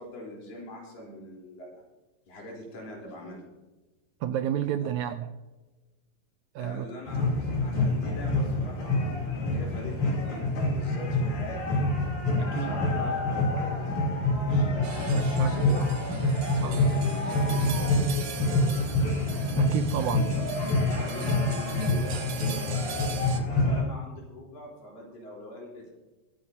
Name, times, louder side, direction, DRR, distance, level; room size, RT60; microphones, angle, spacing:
voice 1, 0.0-1.8 2.3-3.4 4.8-4.9 6.6-11.6 12.2-15.9 16.6-19.1 19.9-20.3 21.0-23.0 23.3-25.9, left 1 dB, 85° left, -2 dB, 5.5 m, -43 dB
voice 2, 4.2-5.3 6.5-6.8 12.4-12.8 15.1-15.6 16.6-16.8 19.5-20.2, right 10 dB, 85° right, 10 dB, 1.7 m, -30 dB
sound 1, 7.1-23.8, left 2 dB, 60° left, 4.5 m, -26 dB
sound 2, 14.8-23.4, right 8 dB, 60° right, 1.8 m, -42 dB
23.0 x 9.6 x 2.8 m, 1.1 s
omnidirectional pair, 3.9 m